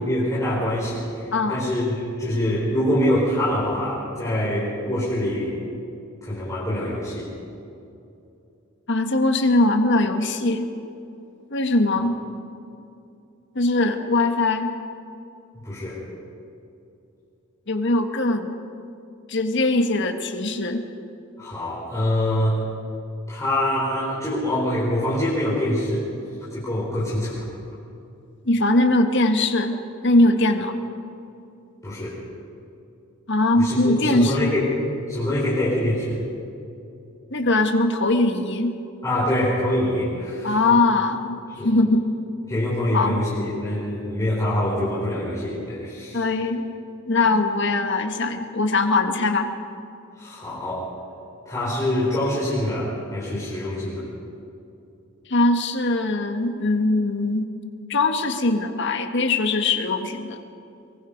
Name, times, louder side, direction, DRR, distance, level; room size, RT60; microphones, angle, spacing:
voice 1, 0.0-5.5 6.2-7.3 15.6-16.0 21.4-22.6 23.3-26.1 26.5-27.5 31.8-32.2 33.6-34.7 35.1-36.2 39.0-40.6 41.6-41.7 42.5-46.2 50.2-50.9 51.4-54.0, left 1 dB, 15° left, -9 dB, 4.6 m, -25 dB
voice 2, 8.9-10.7 11.5-12.2 13.5-14.7 17.7-18.6 19.3-20.8 28.4-29.8 30.0-30.8 33.3-34.5 37.3-38.7 40.4-42.0 42.9-43.2 46.1-46.6 47.1-49.5 55.3-57.5 57.9-60.4, left 2 dB, 55° left, 6 dB, 1.6 m, -21 dB
23.5 x 23.0 x 5.3 m, 2.7 s
head